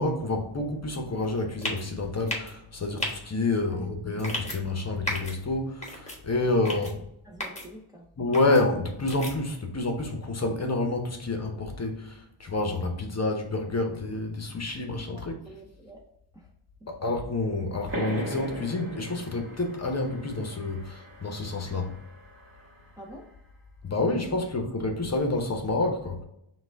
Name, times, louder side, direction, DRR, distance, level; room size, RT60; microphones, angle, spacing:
voice 1, 0.0-6.9 8.2-15.4 16.9-21.9 23.8-26.2, left 2 dB, 30° left, 3 dB, 0.8 m, -28 dB
sound 1, 1.6-1.8 2.3-2.5 3.0-3.1 4.2-4.6 5.1-5.3 5.8-6.2 6.6-6.9 7.4-7.6 8.3-8.6 9.1-9.3, left 1 dB, 15° left, 1.2 m, -32 dB
voice 2, 3.6-4.0 7.2-8.0 15.1-16.0 16.3-16.5 16.8-16.9 21.7-21.8 23.0-23.3, right 1 dB, 10° right, -1 dB, 0.6 m, -47 dB
sound 2, 17.9-23.1, equal, 25° right, 1.5 m, -40 dB
5.8 x 2.4 x 3.4 m, 0.79 s
wide cardioid pair, 110°, 49 cm